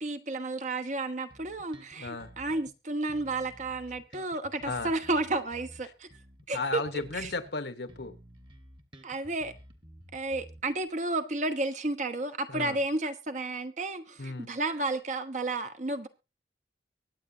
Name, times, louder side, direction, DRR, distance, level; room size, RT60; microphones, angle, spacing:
voice 1, 0.0-6.1 6.5-6.8 7.1-7.3 9.0-9.5 10.1-16.1, right 2 dB, 45° right, 1.2 m, -32 dB
Bass guitar, 1.3-2.7 3.1-7.5 7.9-10.9, equal, 30° right, 1.6 m, -52 dB
voice 2, 2.0-2.3 4.6-4.9 6.5-8.2 12.5-12.8 14.2-14.5, left 3 dB, 70° left, 1.2 m, -34 dB
23.5 x 8.7 x 2.8 m
head